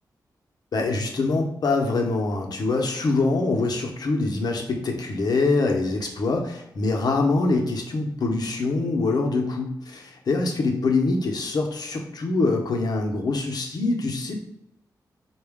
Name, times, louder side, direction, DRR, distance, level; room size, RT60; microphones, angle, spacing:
voice 1, 0.7-14.4, left 3 dB, 65° left, 2 dB, 0.8 m, -24 dB
4.2 x 2.3 x 3.5 m, 0.78 s
cardioid pair, 80°, 7 cm